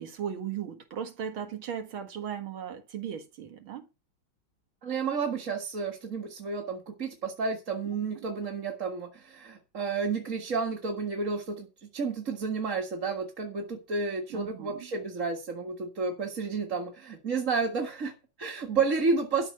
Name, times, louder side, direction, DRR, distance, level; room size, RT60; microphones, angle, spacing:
voice 1, 0.0-3.9 8.2-8.3 14.3-14.9, right 8 dB, 80° right, 2.5 m, -37 dB
voice 2, 4.8-19.5, right 4 dB, 40° right, 1.9 m, -31 dB
12.5 x 5.9 x 7.8 m
omnidirectional pair, 2.3 m